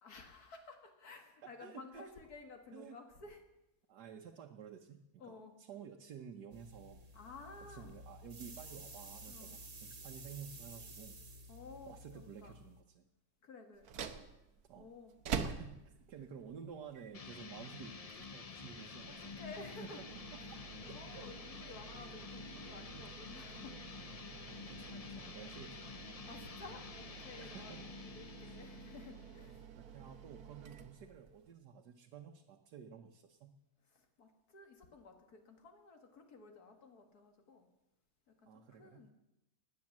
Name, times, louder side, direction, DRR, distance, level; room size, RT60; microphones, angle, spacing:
voice 1, 0.0-3.4 5.2-5.6 7.1-8.0 9.3-9.6 11.5-12.6 13.4-14.3 14.8-15.1 19.1-20.0 20.8-24.5 26.3-27.8 28.0-30.1 33.9-37.7 38.3-39.1, left 3 dB, 70° left, 5 dB, 2.3 m, -54 dB
voice 2, 1.4-2.1 2.7-3.0 3.9-7.1 7.7-11.2 11.9-13.1 14.7-14.9 15.4-19.3 20.9-21.3 21.6-21.7 22.9-23.1 23.9-25.8 27.4-28.0 28.4-28.6 29.5-33.5 38.5-39.1, right 7 dB, 85° right, 2 dB, 1.6 m, -52 dB
sound 1, 6.5-12.8, right 1 dB, 50° right, 2.1 m, -52 dB
Microwave start, 13.7-31.5, right 7 dB, 70° right, 1.5 m, -49 dB
sound 2, 17.1-29.7, left 5 dB, 40° left, 0.5 m, -50 dB
18.5 x 9.4 x 7.3 m, 0.93 s
omnidirectional pair, 1.7 m